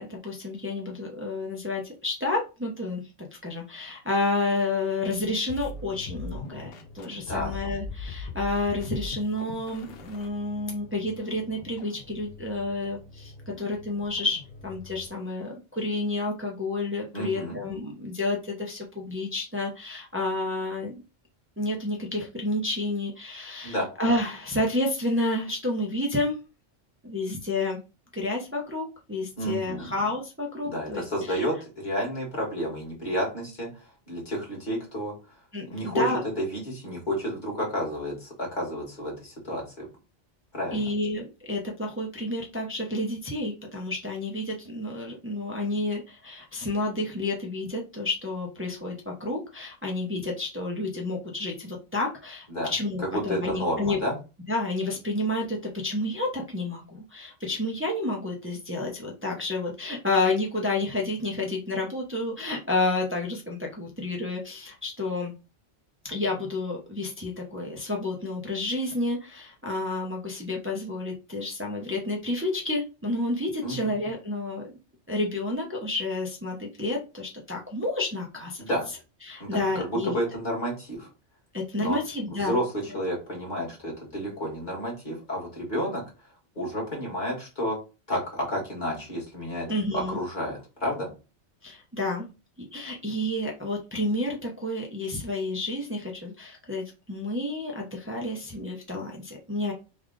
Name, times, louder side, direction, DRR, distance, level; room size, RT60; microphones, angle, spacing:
voice 1, 0.0-21.0 21.6-26.4 27.0-27.8 28.1-31.5 35.5-36.2 40.7-54.0 54.5-55.6 55.8-65.3 66.0-74.7 75.1-78.7 79.2-80.1 81.5-82.6 89.7-90.2 91.6-92.3 92.6-99.7, left 2 dB, 15° right, -1 dB, 0.5 m, -30 dB
sound 1, 5.5-15.2, left 3 dB, 60° left, 0.8 m, -41 dB
voice 2, 17.1-17.6 23.6-23.9 29.4-29.9 30.6-33.7 34.1-35.1 35.7-36.0 36.4-39.9 40.5-40.8 52.5-52.7 53.0-54.1 73.6-73.9 78.6-78.9 79.4-81.1 81.8-82.0 82.4-86.0 86.5-87.8 88.1-91.1, equal, 40° left, -3 dB, 1.7 m, -30 dB
3.4 x 2.4 x 3.6 m, 0.30 s
omnidirectional pair, 1.2 m